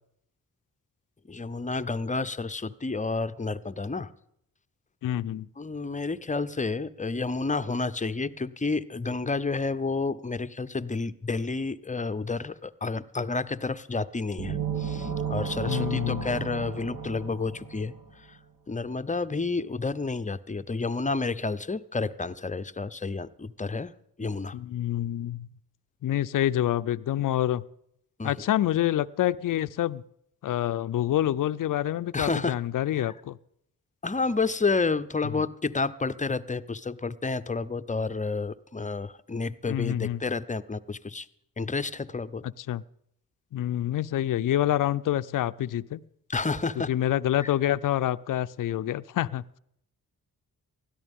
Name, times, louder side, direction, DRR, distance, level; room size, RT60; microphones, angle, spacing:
voice 1, 1.3-4.1 5.6-17.9 18.3-18.4 18.7-23.9 24.2-24.6 28.2-28.3 32.1-32.5 33.0-33.1 34.0-41.3 41.6-42.4 46.3-46.9 47.4-47.5, left 3 dB, 20° left, 13 dB, 0.6 m, -30 dB
voice 2, 5.0-5.5 15.7-16.3 24.5-25.5 26.0-27.6 28.2-30.0 30.4-33.4 39.7-40.2 42.6-42.8 43.5-46.0 46.8-49.4, left 12 dB, 60° left, 14 dB, 0.5 m, -27 dB
sound 1, 14.4-18.2, right 7 dB, 70° right, 1.3 m, -33 dB
19.5 x 13.0 x 3.6 m, 0.74 s
cardioid pair, 55°, 36 cm